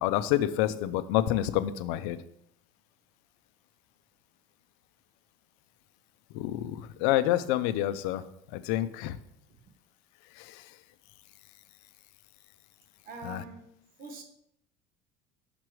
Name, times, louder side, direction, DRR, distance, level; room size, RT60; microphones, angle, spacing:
voice 1, 0.0-2.2 6.3-8.2 8.5-9.2 13.2-13.4, left 13 dB, 80° left, 13 dB, 0.5 m, -28 dB
voice 2, 13.0-13.7 14.0-14.2, right 4 dB, 50° right, 3 dB, 1.1 m, -43 dB
6.1 x 5.9 x 3.1 m, 0.76 s
cardioid pair, 155°, 20 cm